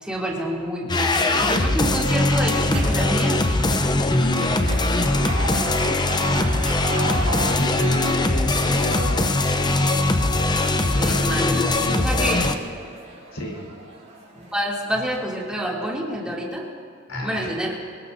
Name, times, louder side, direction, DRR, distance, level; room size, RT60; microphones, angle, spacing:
voice 1, 0.0-3.5 11.0-12.4 14.3-16.7 17.1-17.7, equal, 5° right, -4 dB, 2.8 m, -27 dB
sound 1, 0.9-12.6, left 2 dB, 20° left, 0.7 m, -21 dB
sound 2, 2.7-14.6, right 2 dB, 35° right, 3.6 m, -35 dB
voice 2, 4.0-6.2 7.0-9.3 10.2-12.5 13.3-13.6 17.1-17.5, equal, 80° left, -1 dB, 3.8 m, -33 dB
23.0 x 20.0 x 2.7 m, 2.3 s
head